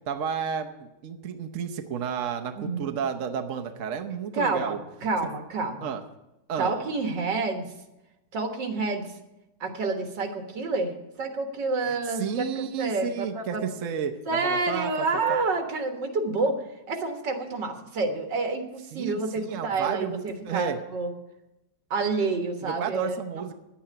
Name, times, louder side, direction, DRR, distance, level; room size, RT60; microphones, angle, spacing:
voice 1, 0.1-4.8 5.8-6.0 6.5-6.7 11.8-15.1 18.9-20.8 22.6-23.5, right 7 dB, 55° right, 6 dB, 1.1 m, -32 dB
voice 2, 2.6-2.9 4.3-5.9 6.6-7.7 8.3-9.0 9.6-13.7 14.3-21.1 21.9-23.5, right 3 dB, 80° right, 5 dB, 2.2 m, -29 dB
11.0 x 8.8 x 8.7 m, 0.94 s
omnidirectional pair, 1.9 m